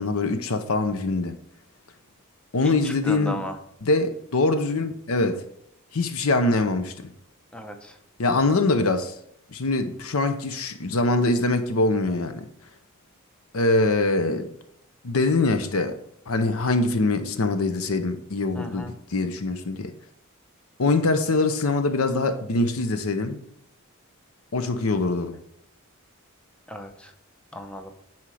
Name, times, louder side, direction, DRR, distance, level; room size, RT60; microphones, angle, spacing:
voice 1, 0.0-1.4 2.5-3.4 3.8-5.4 5.9-7.1 8.2-9.2 9.5-12.5 13.5-14.5 15.0-16.0 16.3-19.9 20.8-23.4 24.5-25.4, left 2 dB, 75° left, 0.8 m, -23 dB
voice 2, 2.6-3.6 7.5-8.0 18.5-18.9 26.7-27.1 27.5-27.9, equal, 5° left, 0.8 m, -35 dB
10.0 x 4.4 x 4.9 m
head